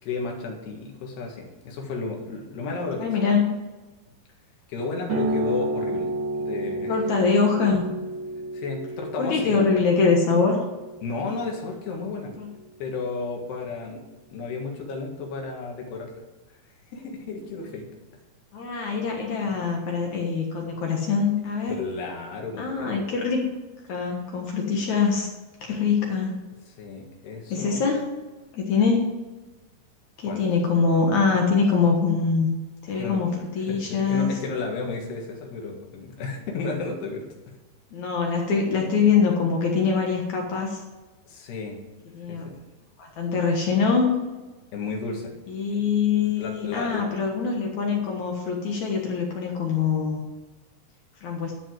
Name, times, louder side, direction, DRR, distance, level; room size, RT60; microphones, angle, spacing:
voice 1, 0.0-3.1 4.7-6.9 8.5-9.7 11.0-12.3 12.8-14.0 14.3-16.1 16.9-17.9 21.8-23.0 26.8-27.8 30.3-30.4 33.0-33.3 33.7-37.3 41.3-41.8 42.3-42.6 44.7-45.3 45.7-45.8 46.4-47.0, left 3 dB, 80° left, 1 dB, 3.7 m, -33 dB
voice 2, 3.0-3.5 6.9-7.9 9.2-10.6 12.4-12.5 18.5-21.7 22.6-23.5 23.9-25.3 25.7-26.4 27.5-28.0 28.5-29.1 30.2-32.5 32.8-34.3 37.9-40.8 42.1-42.6 43.0-44.3 45.5-50.2 51.2-51.5, left 5 dB, 60° left, 0 dB, 2.2 m, -23 dB
D low open string, 5.1-12.2, right 2 dB, 65° right, 3.1 m, -31 dB
12.5 x 5.3 x 7.7 m, 1.2 s
omnidirectional pair, 4.6 m